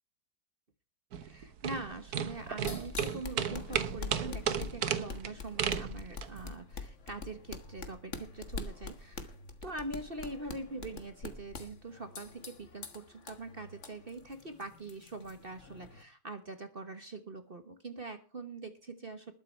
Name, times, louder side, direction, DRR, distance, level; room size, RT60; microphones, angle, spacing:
sound 1, 1.1-6.4, right 8 dB, 55° right, 1.3 m, -34 dB
voice 1, 1.2-9.3 9.6-19.3, right 3 dB, 30° right, 9 dB, 1.2 m, -43 dB
sound 2, 2.3-16.0, left 4 dB, 40° left, 1.5 m, -45 dB
20.0 x 7.7 x 4.5 m, 0.34 s
omnidirectional pair, 2.2 m